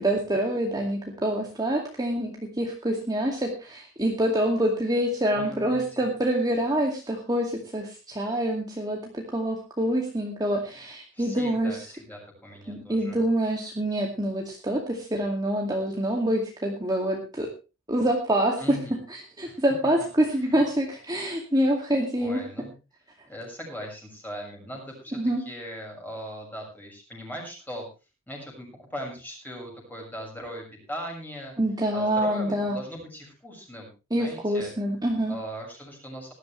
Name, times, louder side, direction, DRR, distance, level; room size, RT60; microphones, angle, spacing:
voice 1, 0.0-11.8 12.7-17.5 17.9-18.6 19.4-22.4 25.1-25.4 31.6-32.8 34.1-35.4, right 1 dB, 20° right, 0 dB, 2.3 m, -26 dB
voice 2, 5.3-5.8 11.1-13.2 18.6-19.0 19.5-19.6 20.3-20.6 22.2-22.7 23.3-27.9 28.3-31.5 31.9-33.9 34.2-34.7 35.3-36.3, equal, 10° left, 0 dB, 6.7 m, -39 dB
19.0 x 12.5 x 3.3 m, 0.30 s
head